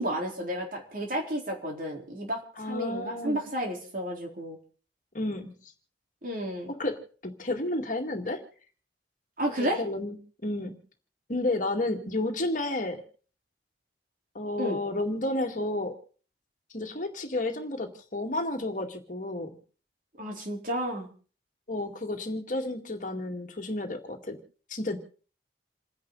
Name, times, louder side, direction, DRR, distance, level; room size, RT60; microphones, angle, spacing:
voice 1, 0.0-2.4 2.7-4.6 6.2-6.7 9.4-9.8 14.6-14.8 20.2-21.1, equal, 50° right, 1 dB, 4.0 m, -31 dB
voice 2, 2.6-3.5 5.1-5.5 6.8-8.4 9.6-10.2 10.4-10.7 11.3-13.0 14.3-15.9 16.7-19.5 21.7-24.4 24.7-25.0, left 2 dB, 45° left, 4 dB, 2.2 m, -31 dB
28.5 x 10.5 x 4.1 m, 0.41 s
head